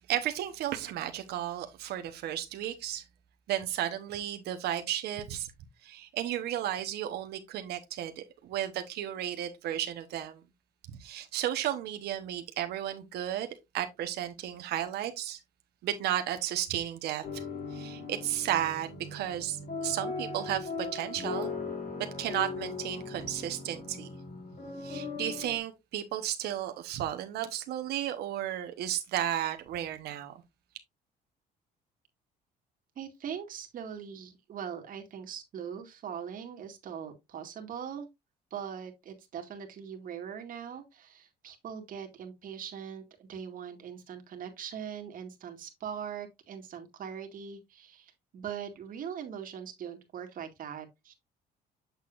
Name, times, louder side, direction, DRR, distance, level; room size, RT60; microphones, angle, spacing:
voice 1, 0.0-3.0 3.5-5.5 5.8-10.4 10.9-15.4 15.8-17.4 17.7-21.5 22.0-24.1 24.8-30.3, right 11 dB, 75° right, 1.1 m, -34 dB
sound 1, 17.2-25.6, left 4 dB, 55° left, 3.0 m, -39 dB
voice 2, 33.0-38.1 38.5-51.1, right 8 dB, 55° right, 2.0 m, -41 dB
7.9 x 6.6 x 2.5 m
cardioid pair, 110°, 17 cm